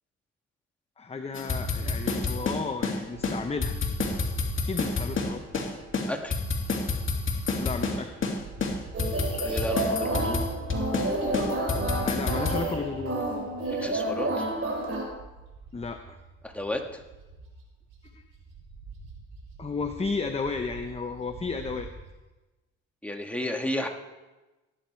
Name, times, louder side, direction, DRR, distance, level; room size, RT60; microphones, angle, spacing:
voice 1, 1.0-3.8 4.6-5.4 7.6-8.1 12.0-13.3 15.7-16.2 18.1-18.2 19.6-21.9, left 4 dB, 20° left, 6 dB, 0.8 m, -33 dB
sound 1, 1.3-3.0 3.2-3.4 3.6-5.7 5.9-8.0 8.2-8.4 8.6-11.1 11.3-12.6, left 4 dB, 40° left, 2.6 m, -28 dB
Bird, 3.0-7.5 7.9-22.1, right 4 dB, 85° right, 4.9 m, -46 dB
sound 2, 8.9-15.0, right 1 dB, 50° right, 3.8 m, -30 dB
voice 2, 9.4-10.5 13.8-14.5 16.4-17.0 23.0-23.9, left 1 dB, 5° left, 2 dB, 1.8 m, -32 dB
17.5 x 9.5 x 4.6 m, 1.1 s
cardioid pair, 90°, 30 cm